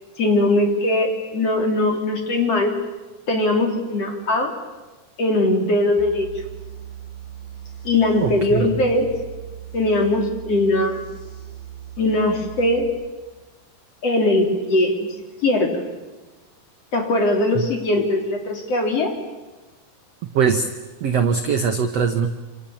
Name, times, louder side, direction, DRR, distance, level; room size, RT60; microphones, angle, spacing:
voice 1, 0.2-2.7 3.3-4.5 5.2-6.3 7.8-9.1 9.7-11.0 12.0-12.9 14.0-15.1 15.4-15.8 16.9-19.1, left 2 dB, 40° left, 3 dB, 4.0 m, -20 dB
sound 1, 6.0-12.9, right 10 dB, 85° left, 8.5 m, -38 dB
voice 2, 8.2-8.8 17.5-17.6 20.3-20.7 21.0-22.3, right 6 dB, 90° right, 7 dB, 1.4 m, -21 dB
28.0 x 27.0 x 7.3 m, 1.2 s
omnidirectional pair, 4.7 m